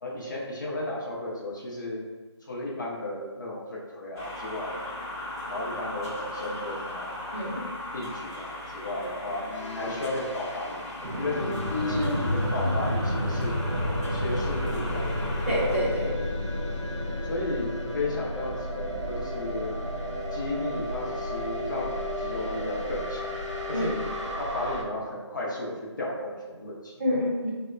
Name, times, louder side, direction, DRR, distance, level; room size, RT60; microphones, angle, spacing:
voice 1, 0.0-2.0 2.4-4.8 5.5-7.1 7.9-11.4 11.9-13.6 14.1-15.3 17.2-19.8 20.3-23.3 23.7-24.0 24.3-27.2, left 2 dB, 40° left, -3 dB, 0.5 m, -34 dB
sound 1, 4.2-15.8, left 1 dB, 10° right, 0.3 m, -38 dB
voice 2, 7.3-7.6 11.7-12.2 12.4-12.5 15.5-16.1 23.7-23.9 27.0-27.5, left 1 dB, 25° right, -7 dB, 0.7 m, -27 dB
sound 2, 9.3-24.4, left 3 dB, 90° left, 0.6 m, -39 dB
sound 3, 11.0-24.8, equal, 85° right, 0.6 m, -32 dB
3.9 x 2.1 x 2.4 m, 1.3 s
figure-of-eight pair, 160°, 15 cm